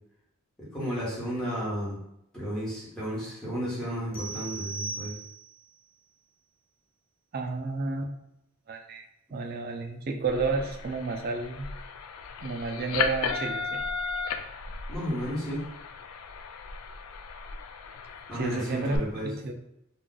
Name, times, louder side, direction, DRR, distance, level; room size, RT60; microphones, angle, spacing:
voice 1, 0.6-2.0 2.3-5.1 14.9-15.7 18.3-19.3, equal, 5° left, -8 dB, 1.1 m, -33 dB
sound 1, 4.1-5.7, right 4 dB, 25° left, 0.6 m, -38 dB
voice 2, 7.3-8.1 8.7-9.1 9.3-11.7 12.4-13.8 18.3-19.5, right 3 dB, 45° right, 3 dB, 0.4 m, -31 dB
sound 2, 10.2-19.0, left 5 dB, 80° left, 0.3 m, -36 dB
2.4 x 2.4 x 3.8 m, 0.82 s
head